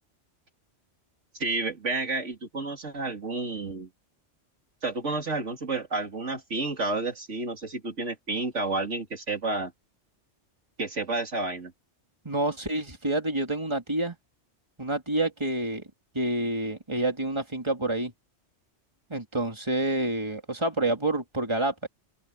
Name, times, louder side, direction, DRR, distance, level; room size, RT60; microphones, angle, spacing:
voice 1, 1.3-3.9 4.8-9.7 10.8-11.7, right 3 dB, 80° right, 3.2 m, -30 dB
voice 2, 12.2-14.1 14.8-15.8 16.1-18.1 19.1-21.9, right 2 dB, 25° right, 3.3 m, -28 dB
open air
omnidirectional pair, 1.2 m